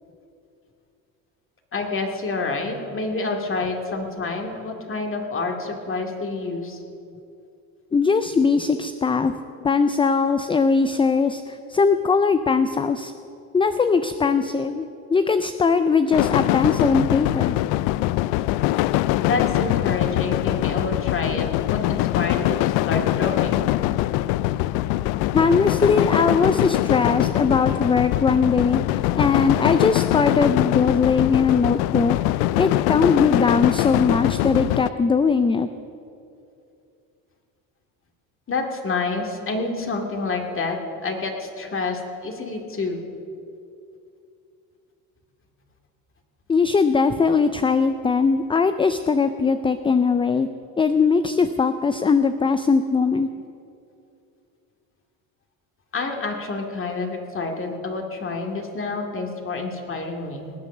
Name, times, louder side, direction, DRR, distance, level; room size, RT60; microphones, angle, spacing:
voice 1, 1.7-6.8 9.6-9.7 19.2-23.6 38.5-43.0 55.9-60.5, left 3 dB, 35° left, 3 dB, 2.3 m, -28 dB
voice 2, 7.9-9.3 9.6-13.1 13.5-17.6 25.3-28.8 29.2-32.2 32.6-35.7 46.5-50.5 50.8-53.3, left 5 dB, 15° left, 10 dB, 0.4 m, -20 dB
sound 1, 16.1-34.9, left 16 dB, 80° left, 0.5 m, -22 dB
19.0 x 8.3 x 7.2 m, 2.6 s
supercardioid pair, 100°, 37 cm